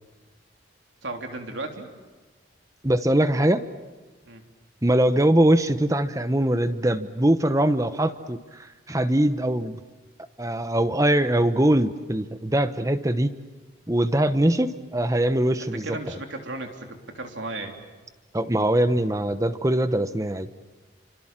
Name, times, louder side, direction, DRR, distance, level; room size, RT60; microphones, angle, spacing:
voice 1, 1.0-1.9 4.3-4.4 15.6-17.8, right 2 dB, 70° right, 4 dB, 3.4 m, -35 dB
voice 2, 2.8-3.6 4.8-9.8 10.4-13.3 13.9-15.9 18.3-20.5, right 1 dB, 15° right, 11 dB, 1.0 m, -22 dB
29.5 x 25.5 x 7.5 m, 1.3 s
head